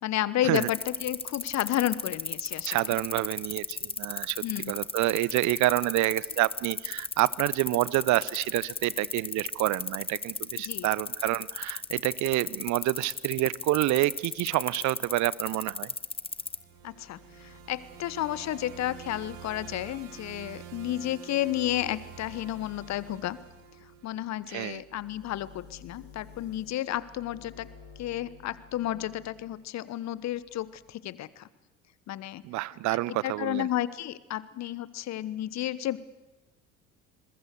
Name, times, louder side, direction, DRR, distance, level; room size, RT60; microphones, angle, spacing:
voice 1, 0.0-3.0 4.4-4.7 10.6-10.9 16.8-23.4 24.0-27.7 28.0-31.5 32.1-32.4 33.1-36.0, left 13 dB, 40° left, 19 dB, 1.1 m, -32 dB
sound 1, 0.5-16.6, left 4 dB, 15° left, 1.2 m, -34 dB
voice 2, 2.7-15.9 24.5-24.8 32.4-33.7, right 17 dB, 45° right, 22 dB, 0.8 m, -28 dB
sound 2, 16.2-24.4, right 11 dB, 70° right, 2.6 m, -48 dB
sound 3, 16.7-29.6 30.0-31.0, left 6 dB, 55° left, 5.8 m, -54 dB
28.0 x 22.0 x 6.6 m, 1.0 s
figure-of-eight pair, 60°, 41 cm